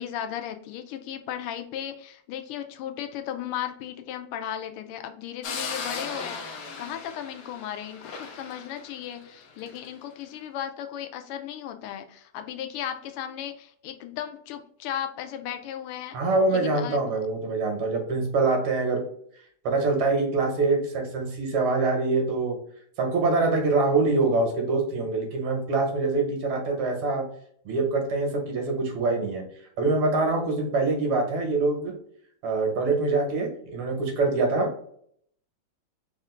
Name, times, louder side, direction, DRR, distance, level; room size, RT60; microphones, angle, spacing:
voice 1, 0.0-16.2 16.5-17.0, left 10 dB, 90° left, 7 dB, 1.5 m, -36 dB
sound 1, 5.4-9.9, left 4 dB, 65° left, 1.1 m, -37 dB
voice 2, 16.1-19.0 19.6-22.6 23.0-27.2 27.7-29.4 29.8-31.9 32.4-34.7, right 3 dB, 80° right, 2 dB, 2.0 m, -24 dB
4.3 x 2.4 x 4.2 m, 0.64 s
omnidirectional pair, 2.4 m